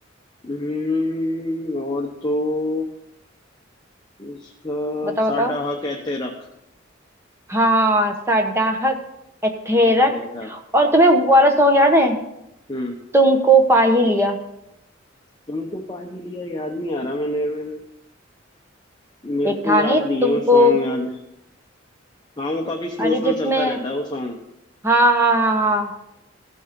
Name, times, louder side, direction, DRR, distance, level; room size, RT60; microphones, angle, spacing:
voice 1, 0.4-2.9 4.2-6.3 9.8-10.5 12.7-13.0 15.5-17.8 19.2-21.1 22.4-24.4, left 2 dB, 20° left, 0 dB, 0.9 m, -26 dB
voice 2, 5.0-5.5 7.5-9.0 9.4-10.1 10.4-12.2 13.1-14.4 19.4-20.8 23.0-23.8 24.8-25.9, equal, 15° right, 3 dB, 1.2 m, -17 dB
16.0 x 6.3 x 5.2 m, 0.84 s
head